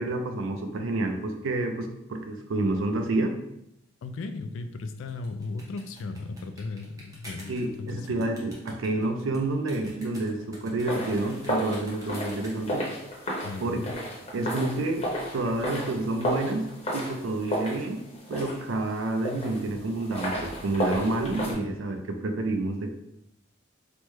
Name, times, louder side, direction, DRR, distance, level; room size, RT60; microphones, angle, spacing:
voice 1, 0.0-3.4 7.5-12.8 13.6-13.8 14.3-15.1 15.3-18.0 18.3-22.9, right 2 dB, 75° right, 5 dB, 0.4 m, -29 dB
voice 2, 4.0-8.3 13.4-13.9, left 3 dB, 75° left, 8 dB, 0.3 m, -36 dB
sound 1, 5.1-12.8, equal, 15° right, 0.6 m, -49 dB
sound 2, 10.8-21.5, equal, 30° left, 0.7 m, -33 dB
3.3 x 2.1 x 3.1 m, 0.80 s
head